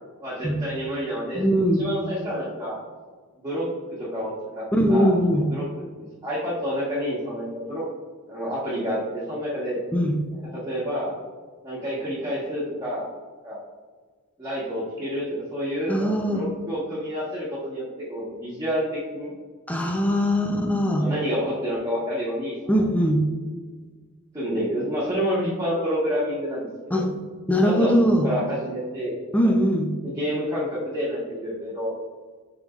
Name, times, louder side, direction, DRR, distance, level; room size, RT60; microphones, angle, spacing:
voice 1, 0.2-2.8 3.4-5.7 6.0-7.8 8.3-9.8 10.3-11.1 11.6-13.1 13.4-13.6 14.4-19.3 21.0-22.8 24.3-27.0 27.6-27.9 28.2-29.1 29.4-29.6 30.0-31.9, equal, 15° right, -10 dB, 1.5 m, -29 dB
voice 2, 1.3-1.9 4.7-5.4 9.9-10.2 15.9-16.5 19.7-21.1 22.7-23.2 26.9-27.1 27.5-28.3 29.3-29.9, equal, 5° left, 3 dB, 0.6 m, -21 dB
9.4 x 5.5 x 2.5 m, 1.5 s
head